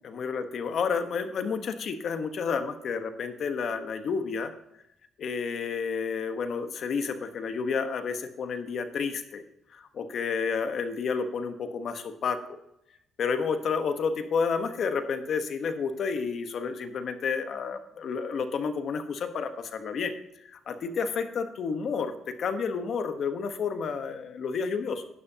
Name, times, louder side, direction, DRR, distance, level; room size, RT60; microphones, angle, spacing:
voice 1, 0.0-4.5 5.2-9.4 9.7-12.6 13.2-20.1 20.5-25.1, left 5 dB, 60° left, 8 dB, 1.2 m, -30 dB
12.5 x 9.6 x 2.9 m, 0.82 s
cardioid pair, 90°, 0 cm